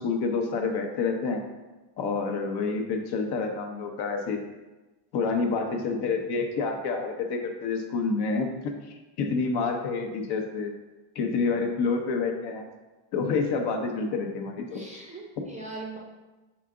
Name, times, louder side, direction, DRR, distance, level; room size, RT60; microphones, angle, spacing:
voice 1, 0.0-1.4 2.0-4.4 5.1-8.5 8.9-10.7 11.1-12.6 13.1-14.8, left 4 dB, 50° left, 4 dB, 0.9 m, -28 dB
voice 2, 14.7-16.0, right 3 dB, 15° right, -2 dB, 0.5 m, -40 dB
5.8 x 4.9 x 3.7 m, 1.2 s
cardioid pair, 160°, 50 cm